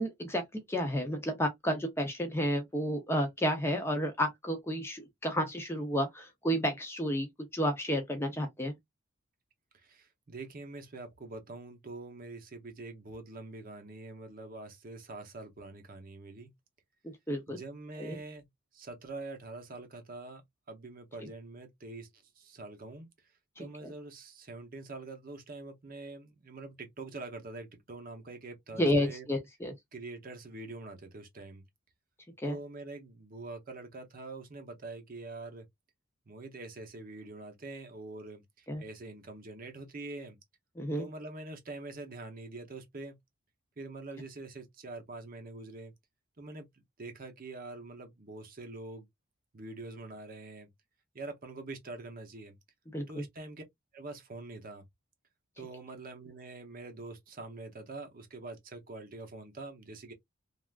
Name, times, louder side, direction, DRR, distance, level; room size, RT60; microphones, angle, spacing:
voice 1, 0.0-7.3 7.5-8.7 17.3-17.6 18.0-18.2 23.6-23.9 28.8-29.7 32.4-32.6 38.7-38.8 40.8-41.1 52.9-53.2, equal, 10° left, 0.6 m, -31 dB
voice 2, 9.8-16.5 17.5-18.4 18.7-20.4 20.7-22.1 22.4-23.1 23.6-29.3 29.9-31.6 32.4-35.6 36.3-40.4 40.9-43.2 43.8-45.9 46.4-46.7 47.0-49.1 49.5-50.7 51.1-52.6 53.1-53.6 53.9-54.8 55.6-60.1, right 2 dB, 40° right, 0.7 m, -45 dB
3.3 x 2.4 x 2.3 m
head